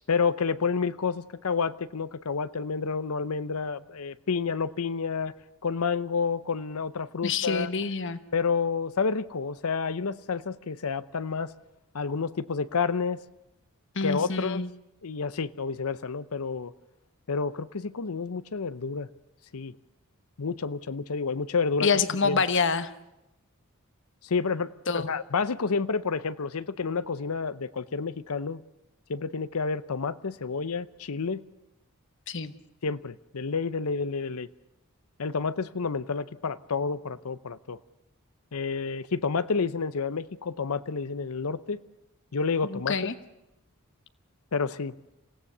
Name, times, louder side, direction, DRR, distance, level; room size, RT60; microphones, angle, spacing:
voice 1, 0.1-5.3 5.6-7.7 8.3-11.5 11.9-13.2 14.0-14.6 15.0-16.7 17.3-19.1 19.5-19.7 20.4-21.9 22.2-22.4 24.2-28.6 29.1-31.4 32.8-34.5 35.2-37.8 38.5-41.8 42.3-43.0 44.5-44.9, left 5 dB, 75° left, 0.7 m, -29 dB
voice 2, 7.2-8.2 13.9-14.7 21.8-22.9 24.9-25.1 32.3-32.5 42.6-43.1, left 5 dB, 55° left, 1.2 m, -27 dB
27.0 x 17.0 x 6.7 m
head